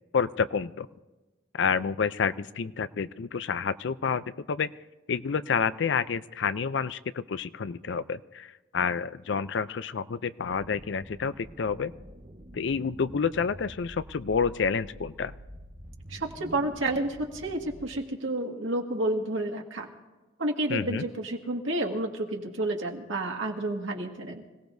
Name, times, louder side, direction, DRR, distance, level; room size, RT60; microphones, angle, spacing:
voice 1, 0.1-0.9 1.5-4.7 5.1-11.9 12.5-15.3 20.7-21.1, left 6 dB, 65° left, 14 dB, 0.4 m, -29 dB
sound 1, 10.4-18.0, equal, 40° right, 1.4 m, -47 dB
voice 2, 16.1-19.9 20.4-24.4, right 2 dB, 85° right, 2 dB, 1.8 m, -30 dB
26.0 x 17.0 x 2.7 m, 1.2 s
head